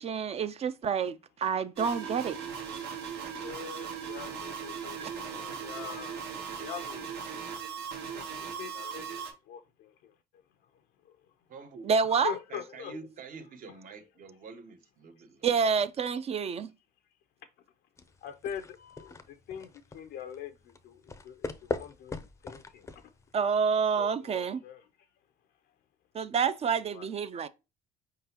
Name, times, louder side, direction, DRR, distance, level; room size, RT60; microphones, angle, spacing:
voice 1, 0.0-2.4 2.9-3.0 5.0-5.1 11.8-12.3 15.4-16.7 23.3-24.6 26.1-27.5, right 6 dB, 40° right, 0.4 m, -28 dB
sound 1, 1.8-9.3, right 7 dB, 85° right, 1.2 m, -38 dB
voice 2, 3.3-7.1 8.1-9.1 9.5-10.2 11.0-11.2 12.1-13.0 18.2-23.1 24.0-25.1 26.9-27.1, left 8 dB, 75° left, 0.5 m, -44 dB
voice 3, 11.5-11.9 12.5-15.5, right 4 dB, 55° right, 0.9 m, -47 dB
sound 2, 18.0-23.6, left 3 dB, 15° left, 0.5 m, -41 dB
4.8 x 3.8 x 2.8 m
cardioid pair, 110°, 17 cm